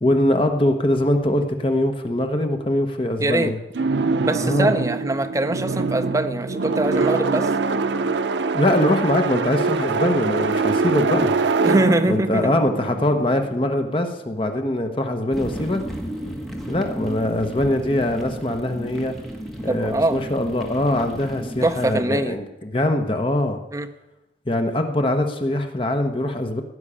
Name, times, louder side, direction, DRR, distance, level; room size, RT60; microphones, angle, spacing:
voice 1, 0.0-3.6 4.4-4.7 8.5-11.4 12.1-15.8 16.7-19.2 19.6-23.6 24.5-26.6, left 1 dB, 30° left, 5 dB, 1.0 m, -22 dB
voice 2, 3.2-3.5 4.2-7.5 11.6-12.5 19.7-20.2 21.6-22.4 23.7-23.9, right 1 dB, 20° right, 8 dB, 0.6 m, -23 dB
sound 1, 3.7-13.7, right 4 dB, 80° right, 0.6 m, -23 dB
sound 2, 15.3-22.0, equal, ahead, 1.8 m, -33 dB
15.5 x 6.3 x 9.9 m, 1.0 s
head